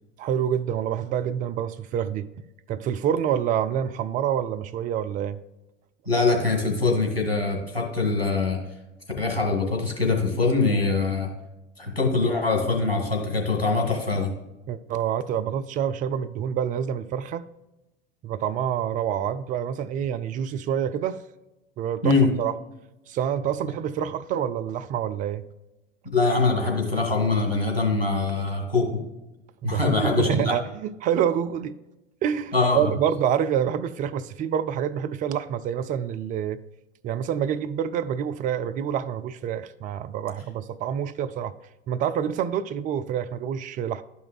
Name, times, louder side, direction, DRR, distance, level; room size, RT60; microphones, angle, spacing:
voice 1, 0.2-2.3 2.7-5.4 14.7-17.4 18.2-21.2 21.8-22.5 23.1-25.4 29.6-31.7 32.2-36.6 37.0-41.5 41.9-44.0, right 9 dB, 30° right, 0.4 m, -27 dB
voice 2, 6.1-8.6 9.2-11.3 11.8-14.3 22.0-22.3 26.1-29.0 29.6-30.4 32.5-32.8, left 3 dB, 85° left, 1.8 m, -23 dB
12.0 x 5.4 x 2.3 m
figure-of-eight pair, 75°, 29 cm